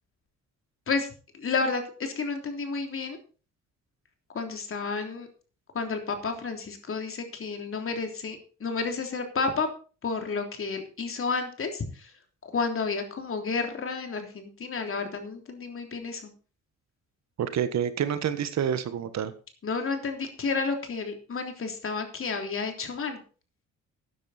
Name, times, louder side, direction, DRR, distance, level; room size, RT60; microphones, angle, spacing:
voice 1, 1.3-3.2 4.3-5.3 5.7-9.7 10.0-12.1 12.5-16.3 19.6-23.2, left 4 dB, 45° left, 5 dB, 3.3 m, -31 dB
voice 2, 17.4-19.3, right 8 dB, 60° right, 12 dB, 1.4 m, -28 dB
13.0 x 9.9 x 4.3 m, 0.37 s
cardioid pair, 90°, 30 cm